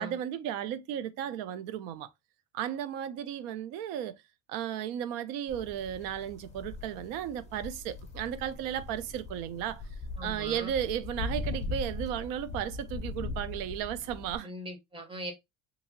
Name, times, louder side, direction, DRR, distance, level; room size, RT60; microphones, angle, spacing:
voice 1, 0.0-2.1 2.5-4.2 4.5-9.8 10.2-14.5, right 10 dB, 75° right, 0.5 m, -34 dB
sound 1, 5.5-14.4, left 3 dB, 20° left, 0.4 m, -40 dB
voice 2, 10.2-10.7 14.4-15.3, equal, 15° right, 0.7 m, -40 dB
2.8 x 2.6 x 2.6 m
cardioid pair, 130°, 35 cm